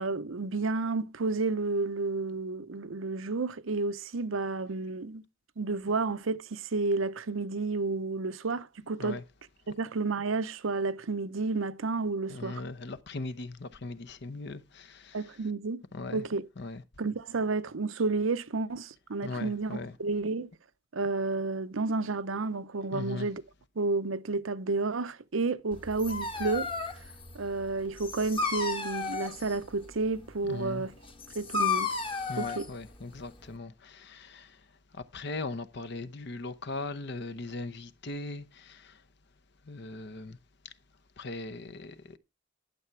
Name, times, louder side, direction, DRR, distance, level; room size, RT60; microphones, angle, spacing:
voice 1, 0.0-5.2 5.6-9.2 9.8-12.6 15.1-15.8 16.1-16.4 17.0-20.5 20.9-23.4 23.8-26.7 27.3-30.9 31.3-31.9 32.4-32.7, right 3 dB, 85° right, 0.7 m, -31 dB
voice 2, 12.3-15.5 15.9-16.3 16.6-16.8 19.2-20.0 22.9-23.3 30.4-30.9 32.3-39.1 39.6-40.4 40.6-42.2, left 3 dB, 60° left, 0.8 m, -39 dB
Dog, 25.7-33.6, left 4 dB, 25° left, 1.2 m, -34 dB
11.5 x 6.9 x 4.6 m
head